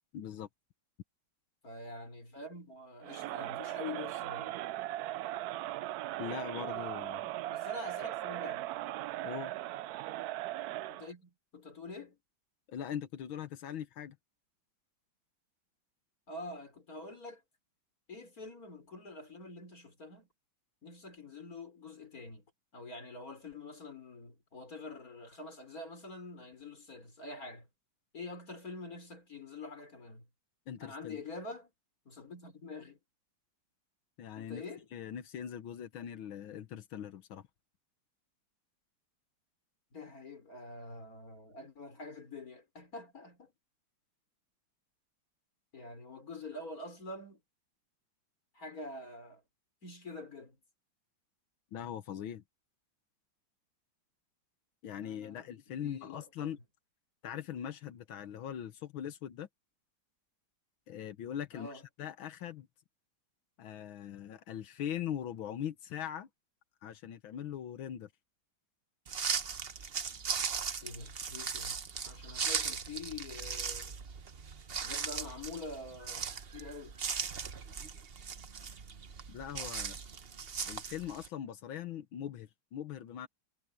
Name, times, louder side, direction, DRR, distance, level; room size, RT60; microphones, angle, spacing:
voice 1, 0.1-0.5 6.2-7.2 9.2-9.5 12.7-14.2 30.7-31.2 34.2-34.6 34.9-37.4 51.7-52.4 54.8-56.6 57.2-59.5 60.9-62.7 63.6-66.3 66.8-68.1 79.3-80.0 80.7-83.3, left 9 dB, 85° left, 1.9 m, -41 dB
voice 2, 1.6-4.6 7.5-8.6 10.9-12.2 16.3-17.4 18.1-20.3 20.8-22.5 22.7-27.7 28.1-30.3 30.8-31.7 32.1-33.0 34.4-34.9 39.9-43.5 45.7-47.4 48.5-49.4 49.8-50.6 54.9-56.6 61.5-61.8 70.8-71.8 72.0-74.0 74.8-77.0, left 2 dB, 45° left, 5.3 m, -46 dB
Crowd, 3.0-11.1, right 15 dB, 80° right, 0.8 m, -38 dB
sound 1, 69.1-81.3, right 6 dB, 40° right, 0.9 m, -38 dB
omnidirectional pair, 2.1 m